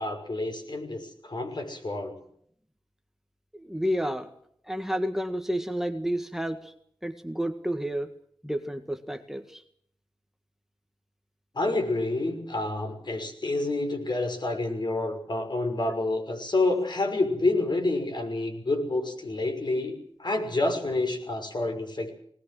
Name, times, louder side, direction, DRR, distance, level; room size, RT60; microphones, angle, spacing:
voice 1, 0.0-2.1 11.5-22.1, left 2 dB, 55° left, 5 dB, 6.0 m, -28 dB
voice 2, 3.5-4.3 4.7-6.7 7.0-8.1 8.4-9.6, equal, 5° right, 7 dB, 1.7 m, -30 dB
19.5 x 19.5 x 7.7 m, 0.66 s
wide cardioid pair, 60°, 9 cm